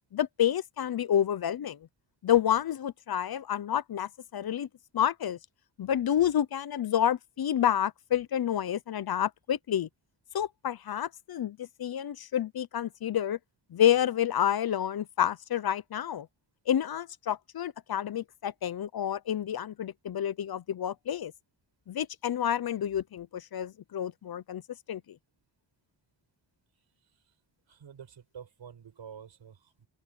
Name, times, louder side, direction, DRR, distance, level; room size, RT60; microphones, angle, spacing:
voice 1, 0.1-1.8 2.2-4.7 4.9-5.4 5.8-9.9 10.3-13.4 13.7-16.3 16.7-21.3 21.9-24.6 24.9-25.0, left 10 dB, 55° left, 0.6 m, -29 dB
voice 2, 27.0-27.3 27.7-29.9, right 7 dB, 75° right, 5.2 m, -49 dB
open air
wide cardioid pair, 175°, 44 cm